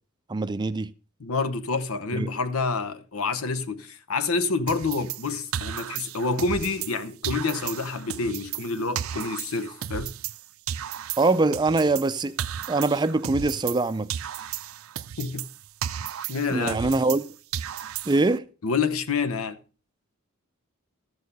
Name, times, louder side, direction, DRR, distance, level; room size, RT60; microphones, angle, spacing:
voice 1, 0.3-0.9 2.1-2.3 11.2-12.3 12.7-14.1 16.5-17.2 18.1-18.4, right 3 dB, 20° right, 0.4 m, -23 dB
voice 2, 1.2-10.1 15.2-15.5 16.3-16.9 18.6-19.6, left 4 dB, 90° left, 0.9 m, -28 dB
sound 1, 4.7-7.0 7.2-10.4 10.7-13.8 14.1-17.3 17.5-18.4, right 10 dB, 75° right, 0.5 m, -34 dB
13.5 x 6.5 x 5.3 m
head